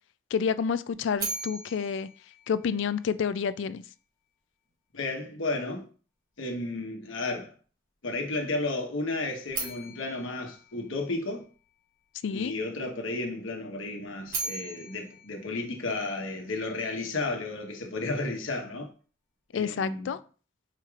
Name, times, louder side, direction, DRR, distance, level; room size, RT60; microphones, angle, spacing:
voice 1, 0.3-2.1 2.5-3.8 12.2-12.5 19.5-20.2, left 6 dB, 65° left, 0.3 m, -29 dB
sound 1, 1.2-3.3 9.5-11.7 14.0-16.4, right 3 dB, 45° right, 1.2 m, -39 dB
voice 2, 4.9-5.8 6.4-7.5 8.0-11.4 12.3-18.9 19.5-20.1, left 2 dB, 80° left, 1.1 m, -33 dB
4.8 x 4.5 x 2.4 m
head